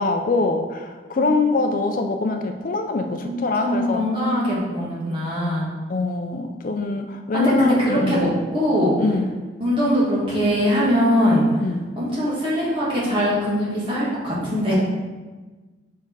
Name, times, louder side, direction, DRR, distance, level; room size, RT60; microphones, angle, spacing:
voice 1, 0.0-4.1 5.9-8.2 9.0-9.4 11.6-11.9, left 3 dB, 45° left, 5 dB, 0.4 m, -23 dB
voice 2, 3.2-5.7 7.3-9.0 9.6-11.4 12.0-14.7, equal, 30° right, -7 dB, 1.9 m, -22 dB
5.2 x 4.6 x 4.7 m, 1.3 s
head